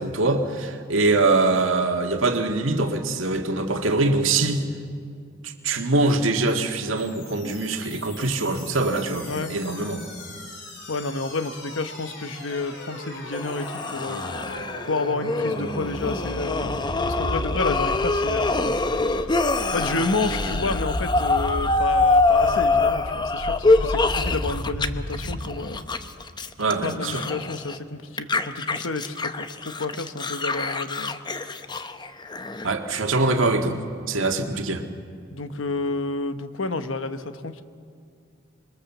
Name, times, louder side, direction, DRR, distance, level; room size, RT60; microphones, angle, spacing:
voice 1, 0.0-4.6 5.4-10.0 26.6-27.3 32.6-33.8 34.1-34.8, right 3 dB, 90° right, 4 dB, 1.8 m, -23 dB
sound 1, 6.5-25.5, left 1 dB, 60° left, 4.1 m, -35 dB
voice 2, 10.9-14.3 14.9-18.9 19.7-25.8 26.8-31.2 35.3-37.6, left 3 dB, 80° left, 10 dB, 1.1 m, -30 dB
sound 2, 13.3-24.9 25.1-27.8 28.2-32.7, left 3 dB, 20° left, 0.7 m, -25 dB
26.5 x 21.5 x 7.3 m, 2.3 s
head